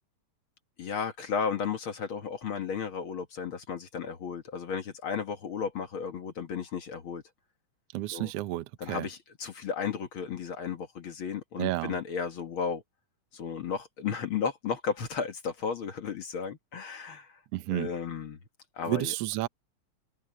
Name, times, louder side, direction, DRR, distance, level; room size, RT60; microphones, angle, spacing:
voice 1, 0.8-7.2 8.1-8.3 8.8-12.8 13.3-17.4 17.7-18.4 18.8-19.1, left 6 dB, 50° left, 1.9 m, -34 dB
voice 2, 7.9-9.1 11.6-12.0 17.5-17.9 18.9-19.5, right 17 dB, 70° right, 1.5 m, -31 dB
open air
omnidirectional pair, 3.4 m